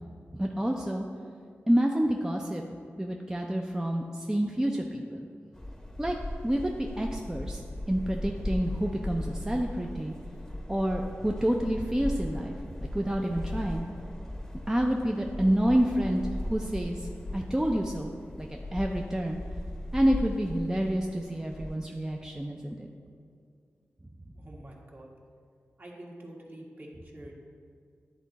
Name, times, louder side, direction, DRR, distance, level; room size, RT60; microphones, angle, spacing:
voice 1, 0.3-1.1 1.7-2.6 3.0-5.3 6.0-6.2 6.4-10.1 10.7-12.6 12.9-13.8 14.7-18.1 18.4-19.4 19.9-22.9, equal, 10° right, 1 dB, 0.5 m, -28 dB
sound 1, 5.5-21.8, left 1 dB, 10° left, 0.9 m, -38 dB
voice 2, 24.3-25.1 25.8-27.3, right 1 dB, 45° right, -2 dB, 1.4 m, -46 dB
10.0 x 3.7 x 4.1 m, 2.2 s
cardioid pair, 45°, 5 cm